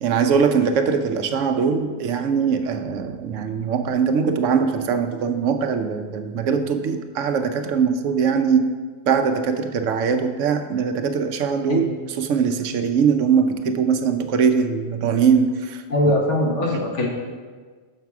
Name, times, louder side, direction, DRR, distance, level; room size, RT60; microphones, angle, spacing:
voice 1, 0.0-8.7 9.1-15.8 16.7-16.8, right 6 dB, 85° right, 7 dB, 1.0 m, -21 dB
voice 2, 15.9-17.1, left 1 dB, 75° left, -1 dB, 1.5 m, -21 dB
6.6 x 5.9 x 4.7 m, 1.5 s
omnidirectional pair, 1.3 m